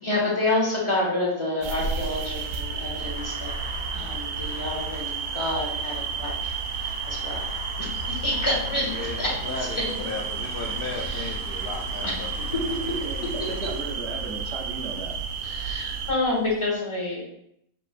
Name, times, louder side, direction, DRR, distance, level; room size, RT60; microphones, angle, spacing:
voice 1, 0.0-3.5 3.9-7.5 7.8-10.0 10.9-11.4 12.0-12.6 12.9-13.0 15.4-17.2, left 2 dB, 25° left, -4 dB, 1.0 m, -29 dB
sound 1, 1.6-16.1, right 5 dB, 85° right, 1.1 m, -32 dB
sound 2, 2.9-16.6, left 1 dB, 45° left, 1.4 m, -45 dB
voice 2, 8.9-12.3 12.5-12.7, left 4 dB, 80° left, 0 dB, 0.5 m, -35 dB
sound 3, 9.4-13.8, right 1 dB, 30° right, 0.8 m, -43 dB
voice 3, 13.0-15.1, right 3 dB, 65° right, 1 dB, 0.7 m, -35 dB
4.9 x 3.3 x 2.4 m, 0.76 s
omnidirectional pair, 1.5 m